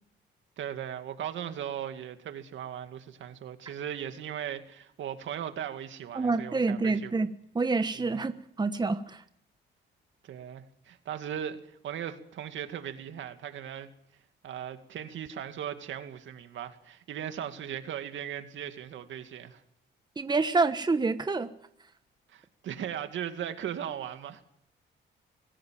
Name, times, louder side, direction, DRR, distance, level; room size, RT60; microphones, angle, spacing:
voice 1, 0.6-7.1 7.9-8.2 10.2-13.9 14.4-19.6 22.3-24.4, right 9 dB, 75° right, 2.3 m, -38 dB
voice 2, 6.1-7.3 7.5-9.2 20.2-21.5, right 3 dB, 20° right, 1.3 m, -27 dB
25.5 x 16.5 x 7.6 m
cardioid pair, 90°, 20 cm